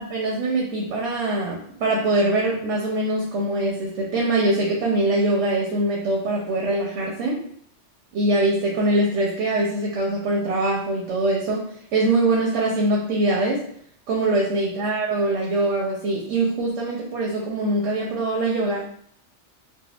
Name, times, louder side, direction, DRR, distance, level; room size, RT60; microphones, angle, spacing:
voice 1, 0.1-7.4 8.1-13.6 14.1-18.9, right 2 dB, 85° right, -2 dB, 1.0 m, -23 dB
4.3 x 2.0 x 2.2 m, 0.63 s
omnidirectional pair, 1.2 m